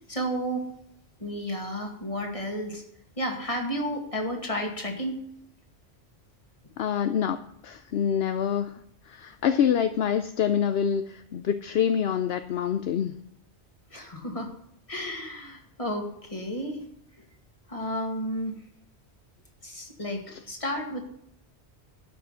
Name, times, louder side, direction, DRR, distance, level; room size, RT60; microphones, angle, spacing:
voice 1, 0.1-0.7 1.2-2.8 3.2-5.2 13.9-14.5 14.9-16.8 17.7-18.6 19.6-21.0, equal, 30° left, 2 dB, 2.3 m, -32 dB
voice 2, 6.8-7.4 7.6-8.8 9.0-13.1 20.3-20.4, left 8 dB, 70° left, 9 dB, 0.9 m, -26 dB
12.0 x 6.1 x 8.2 m, 0.73 s
omnidirectional pair, 1.1 m